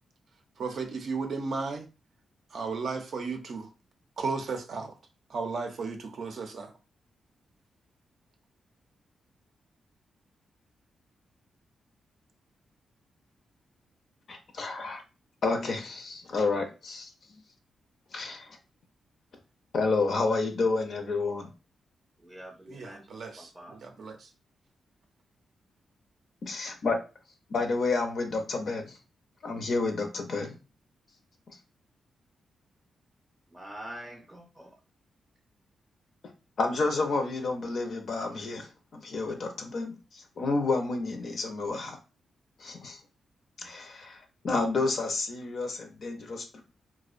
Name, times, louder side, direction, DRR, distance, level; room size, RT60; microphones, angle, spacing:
voice 1, 0.6-1.8 2.5-3.7 4.2-5.0 5.3-6.7 22.7-24.3, right 4 dB, 65° right, 0.4 m, -34 dB
voice 2, 14.3-15.0 15.4-17.1 18.1-18.5 19.7-21.5 26.4-27.0 27.5-29.0 29.4-30.5 36.6-38.7 38.9-42.0 42.6-43.0 43.6-44.2 44.4-46.6, left 3 dB, 60° left, 0.5 m, -30 dB
voice 3, 22.2-23.0 23.4-23.8 33.5-34.7, right 1 dB, 10° right, 0.5 m, -45 dB
2.4 x 2.0 x 2.4 m
cardioid pair, 100°, 0 cm